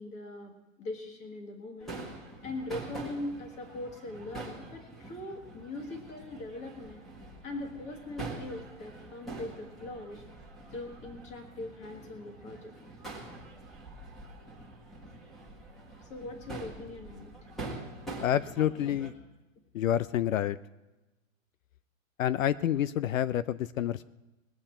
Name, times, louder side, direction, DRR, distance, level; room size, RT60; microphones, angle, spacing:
voice 1, 0.0-7.0 7.4-10.2 10.7-12.7 16.0-17.3, left 2 dB, 15° left, 3 dB, 1.5 m, -41 dB
Crowd / Fireworks, 1.8-19.1, right 2 dB, ahead, 1.6 m, -45 dB
voice 2, 18.2-19.1 19.7-20.6 22.2-24.0, left 11 dB, 70° left, 15 dB, 0.6 m, -28 dB
21.5 x 7.9 x 4.4 m, 1.1 s
hypercardioid pair, 170°, 41 cm